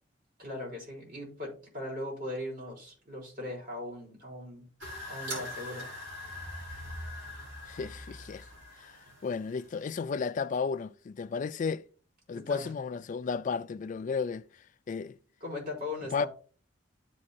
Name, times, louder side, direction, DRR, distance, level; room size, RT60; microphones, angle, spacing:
voice 1, 0.4-4.7 5.1-5.9 12.3-12.7 15.4-16.3, left 2 dB, 45° right, 4.4 m, -39 dB
sound 1, 4.8-9.9, left 1 dB, 75° right, 3.5 m, -42 dB
voice 2, 7.7-8.5 8.8-8.9 9.2-11.8 12.3-14.4 14.9-15.2 16.1-16.3, left 5 dB, 40° left, 0.3 m, -33 dB
12.5 x 5.3 x 2.7 m
head